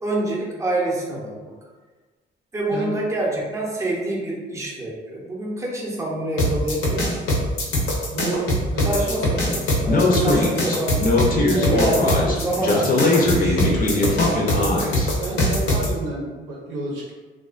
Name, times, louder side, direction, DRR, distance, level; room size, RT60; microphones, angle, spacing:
voice 1, 0.0-1.6 2.5-7.3 8.9-11.0 11.5-14.1, right 2 dB, 15° right, -4 dB, 0.6 m, -27 dB
sound 1, 6.4-15.9, left 1 dB, 80° left, 0.7 m, -22 dB
voice 2, 8.1-9.2 14.6-17.1, right 2 dB, 85° right, -4 dB, 0.7 m, -31 dB
Speech, 9.9-15.1, left 2 dB, 45° left, 0.5 m, -20 dB
2.3 x 2.3 x 2.4 m, 1.3 s
cardioid pair, 90°, 20 cm